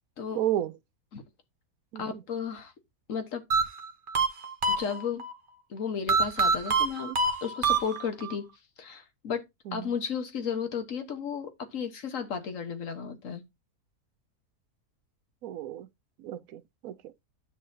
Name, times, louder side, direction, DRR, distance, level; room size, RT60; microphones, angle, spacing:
voice 1, 0.3-0.7 1.9-2.2 9.7-9.9 15.4-15.9 16.2-17.0, right 12 dB, 70° right, 1.0 m, -32 dB
voice 2, 2.0-2.7 3.1-3.4 4.7-5.2 5.7-7.1 7.4-8.5 8.8-9.4 9.7-13.4, left 6 dB, 55° left, 1.6 m, -34 dB
sound 1, 3.5-5.3 6.1-8.4, right 3 dB, 35° right, 1.1 m, -26 dB
10.0 x 6.4 x 2.8 m
omnidirectional pair, 1.7 m